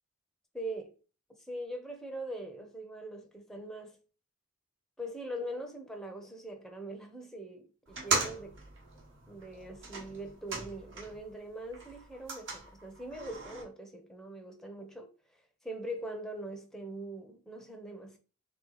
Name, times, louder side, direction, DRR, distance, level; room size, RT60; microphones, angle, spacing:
voice 1, 0.5-0.9 1.4-4.0 5.0-8.6 9.3-18.2, right 1 dB, ahead, 0.6 m, -42 dB
sound 1, 7.9-11.3 11.6-13.6, right 3 dB, 65° right, 1.2 m, -38 dB
3.2 x 3.0 x 3.8 m
head